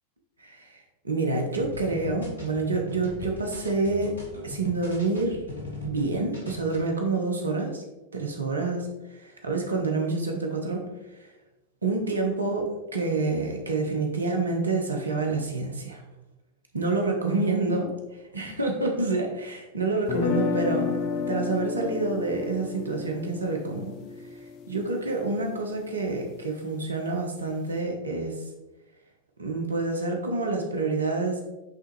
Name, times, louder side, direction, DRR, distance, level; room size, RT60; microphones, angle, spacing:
voice 1, 0.4-4.1 4.4-5.4 5.8-7.8 8.1-10.8 11.2-11.3 11.8-16.0 16.7-17.9 18.3-20.9 21.3-23.9 24.7-28.4 29.4-31.4, right 3 dB, 75° right, 2 dB, 1.0 m, -28 dB
sound 1, 1.6-6.1 6.3-6.8, left 2 dB, 75° left, 1.5 m, -39 dB
sound 2, 20.1-26.1, left 5 dB, 40° left, 0.5 m, -31 dB
8.2 x 3.7 x 3.1 m, 1.0 s
figure-of-eight pair, 90°, 0 cm